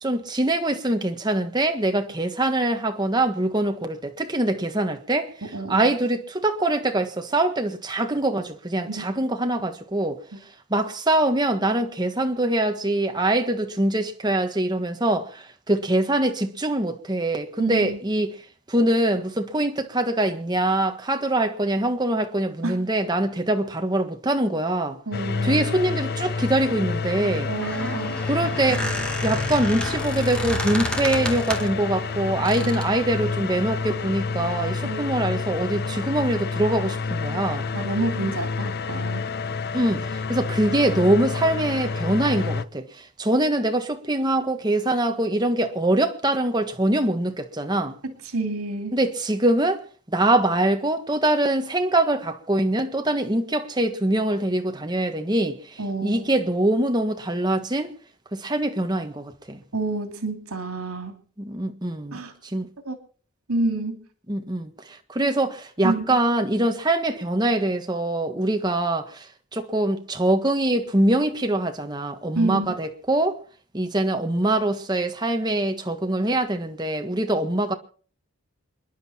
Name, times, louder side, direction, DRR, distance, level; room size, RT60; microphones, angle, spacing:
voice 1, 0.0-5.3 5.7-10.2 10.7-18.4 18.7-25.0 25.4-27.5 28.2-28.9 29.2-37.7 39.7-48.0 48.9-49.8 50.1-57.9 58.3-59.6 61.4-62.7 64.3-73.4 73.7-77.7, right 1 dB, 20° right, 1.5 m, -23 dB
voice 2, 5.5-5.9 8.9-9.1 17.6-18.0 22.6-22.8 25.1-25.6 27.5-28.9 32.6-32.7 34.8-35.1 37.7-39.2 40.7-40.8 48.0-48.9 55.8-56.2 59.7-61.2 62.1-62.3 62.8-63.0 63.5-64.0 65.2-65.3 65.8-66.2 72.3-72.7, right 2 dB, 85° right, 2.8 m, -29 dB
sound 1, 25.1-42.6, left 4 dB, 45° left, 0.6 m, -29 dB
Squeak, 27.4-31.8 32.4-33.0, equal, 5° left, 2.1 m, -31 dB
28.0 x 11.0 x 4.4 m
head